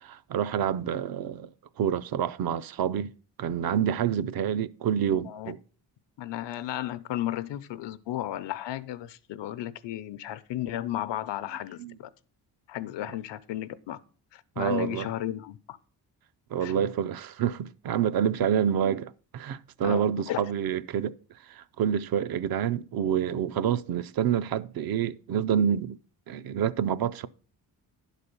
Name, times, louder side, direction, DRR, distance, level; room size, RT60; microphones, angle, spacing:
voice 1, 0.0-1.5 1.8-3.1 3.4-5.6 11.8-11.9 14.6-15.1 16.5-21.2 21.5-26.0 26.3-27.3, right 9 dB, 60° right, 0.5 m, -27 dB
voice 2, 5.1-5.5 6.2-12.1 12.7-14.0 14.3-15.8 16.6-16.7 19.8-20.4, left 13 dB, 90° left, 0.7 m, -34 dB
11.0 x 4.2 x 6.8 m
wide cardioid pair, 150°, 42 cm